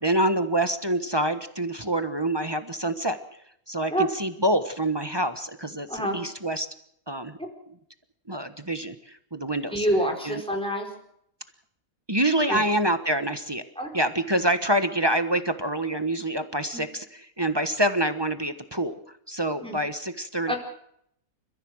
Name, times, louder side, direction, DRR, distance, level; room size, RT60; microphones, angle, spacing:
voice 1, 0.0-3.2 3.7-6.7 7.1-7.4 8.3-9.8 10.2-10.4 12.1-13.6 13.9-18.9 19.3-20.5, right 1 dB, 20° right, 9 dB, 1.2 m, -26 dB
voice 2, 5.9-6.2 7.4-7.5 9.7-10.9 12.5-12.6 13.8-13.9 16.7-16.8 19.6-19.8 20.5-20.6, right 1 dB, 5° left, 2 dB, 4.6 m, -27 dB
29.5 x 15.0 x 6.4 m, 0.72 s
omnidirectional pair, 1.5 m